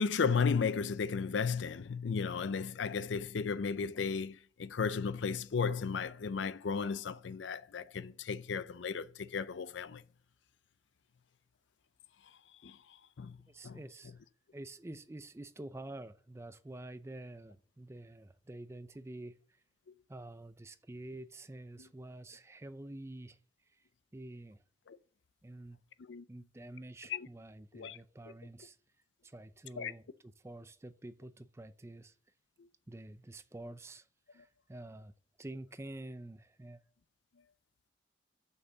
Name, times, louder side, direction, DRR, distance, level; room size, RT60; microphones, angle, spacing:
voice 1, 0.0-10.0 12.6-12.8 13.2-13.4 13.6-13.8 24.9-25.0 26.1-26.2 27.1-27.3 27.7-28.0 29.8-29.9, left 5 dB, 75° left, 0.5 m, -34 dB
voice 2, 13.5-14.2 14.5-19.4 20.1-23.4 23.7-23.8 24.1-24.6 25.4-25.8 26.3-28.8 29.2-32.1 32.9-35.1 35.4-36.8, right 1 dB, 15° right, 0.4 m, -48 dB
6.5 x 5.6 x 7.0 m
head